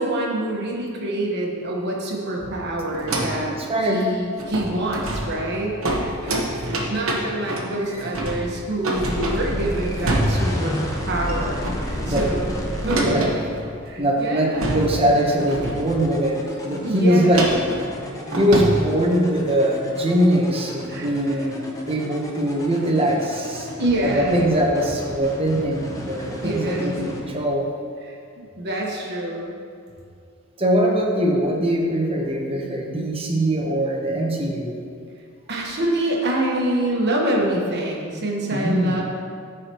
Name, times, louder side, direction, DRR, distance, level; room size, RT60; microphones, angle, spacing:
voice 1, 0.0-3.5 3.9-13.3 13.8-14.8 16.8-17.5 20.9-21.4 23.7-24.3 26.4-27.0 28.0-29.6 35.5-39.0, right 1 dB, 55° right, -2 dB, 1.3 m, -26 dB
sound 1, 2.9-3.5 3.9-4.0 4.3-10.7 11.1-11.4 11.6-13.9 14.2-14.3 14.5-15.2 15.5-16.2 17.3-18.9, right 1 dB, 70° right, 1.1 m, -27 dB
voice 2, 3.5-4.0 12.1-12.3 13.0-13.3 14.0-17.4 18.4-23.7 24.0-27.7 30.6-34.7 38.5-39.0, right 1 dB, 30° right, -1 dB, 1.1 m, -22 dB
sound 2, 8.9-13.0 14.6-27.2, equal, 15° left, 0.9 m, -31 dB
14.0 x 4.9 x 3.0 m, 2.3 s
head